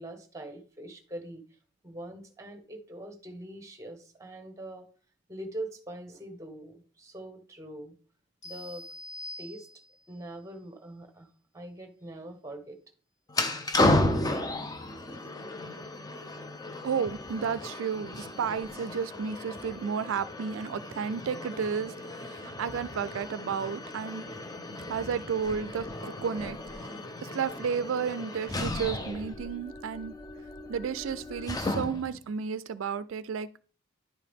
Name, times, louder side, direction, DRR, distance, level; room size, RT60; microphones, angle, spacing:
voice 1, 0.0-1.6 1.8-4.8 5.3-7.9 8.4-8.8 9.4-9.7 10.1-12.8 14.6-14.8, right 1 dB, 15° right, 1.0 m, -43 dB
sound 1, 8.4-10.2, left 2 dB, 35° left, 1.8 m, -44 dB
sound 2, 13.3-32.2, left 2 dB, 20° left, 0.6 m, -34 dB
voice 2, 16.8-24.2 24.9-30.1 30.7-33.6, right 6 dB, 80° right, 0.4 m, -32 dB
10.5 x 4.7 x 3.5 m
head